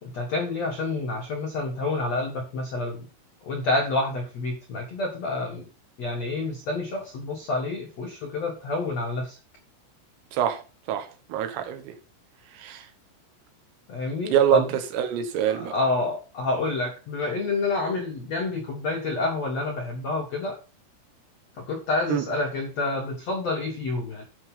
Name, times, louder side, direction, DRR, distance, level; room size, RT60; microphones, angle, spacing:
voice 1, 0.0-3.0 3.4-5.7 6.0-9.4 13.9-14.7 15.4-20.6 21.6-24.2, left 3 dB, 70° left, 1.6 m, -28 dB
voice 2, 10.3-10.6 10.9-12.0 12.5-12.9 14.3-14.7 14.9-15.7 22.1-22.2, right 10 dB, 80° right, 4.0 m, -24 dB
11.0 x 6.2 x 5.5 m
omnidirectional pair, 6.0 m